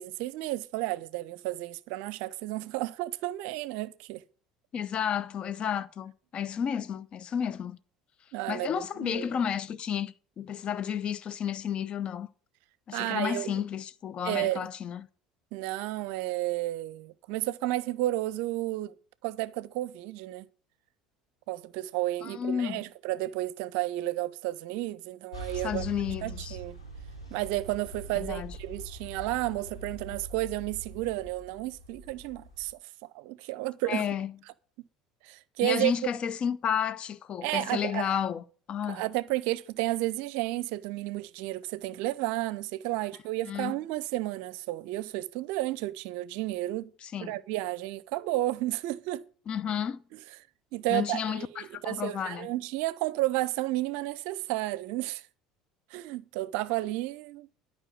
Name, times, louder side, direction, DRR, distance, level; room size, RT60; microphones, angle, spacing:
voice 1, 0.0-4.2 8.3-9.3 12.9-13.5 14.2-14.7 15.5-18.9 19.2-20.5 21.5-25.8 26.2-26.8 27.3-34.0 35.2-35.9 37.4-38.1 38.8-46.9 47.2-49.2 50.1-50.2 50.7-55.2 55.9-57.6, right 17 dB, 60° right, 0.6 m, -32 dB
voice 2, 4.7-7.8 8.5-12.3 12.9-15.1 22.2-22.8 25.6-26.6 28.2-28.5 33.9-34.3 35.6-39.0 43.4-43.7 47.0-47.4 49.5-50.0 50.9-52.5, left 8 dB, 40° left, 0.8 m, -32 dB
sound 1, 25.3-32.7, right 1 dB, 80° left, 3.0 m, -43 dB
12.0 x 5.5 x 7.6 m
figure-of-eight pair, 65°, 3 cm